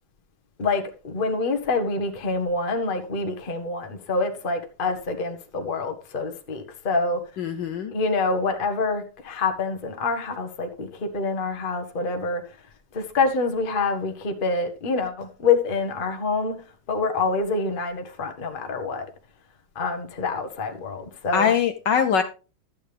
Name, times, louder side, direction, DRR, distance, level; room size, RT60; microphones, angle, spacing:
voice 1, 0.6-7.2 7.9-12.4 12.9-16.6 16.9-19.1 19.7-21.5, left 3 dB, 30° left, 1.2 m, -26 dB
voice 2, 7.4-7.9 21.3-22.2, left 7 dB, 65° left, 1.3 m, -22 dB
12.5 x 8.5 x 3.4 m
omnidirectional pair, 2.3 m